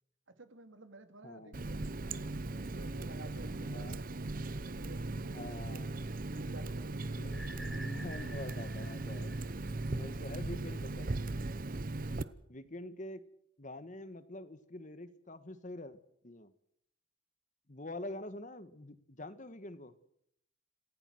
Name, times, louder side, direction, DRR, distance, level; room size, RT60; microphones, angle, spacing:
voice 1, 0.3-2.2 2.6-4.3 4.7-5.8 6.2-7.0 9.9-10.2 12.0-12.4, right 2 dB, 80° right, 9 dB, 2.5 m, -53 dB
voice 2, 1.2-1.6 3.6-4.0 5.3-5.9 7.2-9.3 9.8-11.2 12.5-13.2 13.6-16.5 17.7-19.9, left 1 dB, 40° left, 12 dB, 1.5 m, -46 dB
Water tap faucet, 1.5-12.2, right 2 dB, 45° right, 0.8 m, -38 dB
sound 1, 7.3-10.2, right 1 dB, ahead, 1.2 m, -50 dB
27.5 x 15.5 x 7.8 m, 0.73 s
head